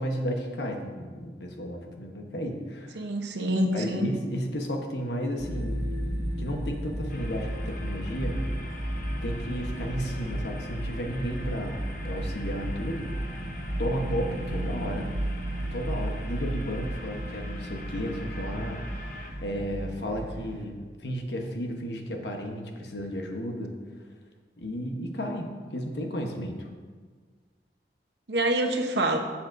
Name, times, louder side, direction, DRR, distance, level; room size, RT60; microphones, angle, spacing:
voice 1, 0.0-3.0 3.7-5.8 6.4-8.4 9.2-13.1 13.8-15.1 15.7-23.7 24.6-26.7, equal, 75° left, 3 dB, 1.1 m, -33 dB
voice 2, 2.9-4.1 28.3-29.2, right 1 dB, 75° right, 4 dB, 0.9 m, -26 dB
sound 1, 5.4-20.7, right 1 dB, 40° right, 1.1 m, -33 dB
sound 2, 7.1-19.3, left 2 dB, 45° left, 1.0 m, -45 dB
12.0 x 7.2 x 2.6 m, 1.5 s
head